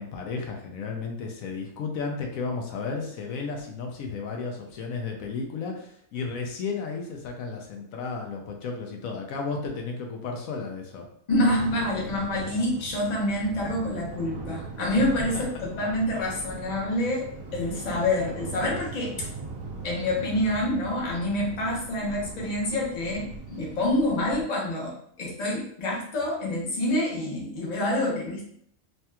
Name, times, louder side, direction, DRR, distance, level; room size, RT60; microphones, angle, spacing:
voice 1, 0.0-11.1 15.0-15.1 15.3-15.6, left 4 dB, 80° left, 2 dB, 1.0 m, -33 dB
voice 2, 11.3-17.2 17.5-19.3 19.8-28.5, left 1 dB, 35° left, -3 dB, 0.8 m, -27 dB
sound 1, 11.3-24.4, right 3 dB, 35° right, 0.4 m, -40 dB
3.2 x 2.8 x 2.2 m, 0.65 s
omnidirectional pair, 1.4 m